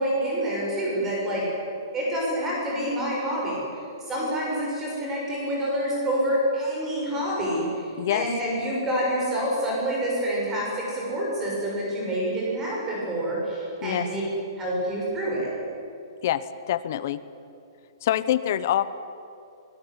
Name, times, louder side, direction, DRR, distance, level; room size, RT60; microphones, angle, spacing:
voice 1, 0.0-1.4 1.9-3.6 4.1-14.2 14.6-15.5, right 1 dB, 10° right, -4 dB, 6.9 m, -27 dB
voice 2, 8.0-8.3 13.8-14.1 16.2-17.2 18.0-18.9, left 12 dB, 35° left, 15 dB, 0.9 m, -25 dB
23.0 x 20.0 x 9.9 m, 2.6 s
hypercardioid pair, 180°, 2 cm